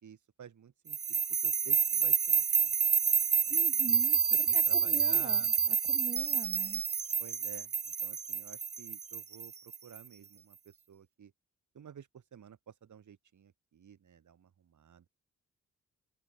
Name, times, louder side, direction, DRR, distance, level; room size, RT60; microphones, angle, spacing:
voice 1, 0.0-2.7 3.5-3.6 4.3-5.5 7.2-11.3 11.7-15.0, right 8 dB, 75° right, 4.2 m, -52 dB
sound 1, 0.9-10.0, right 6 dB, 50° right, 1.9 m, -29 dB
voice 2, 3.5-6.8, right 3 dB, 30° right, 4.0 m, -44 dB
open air
cardioid pair, 55°, 30 cm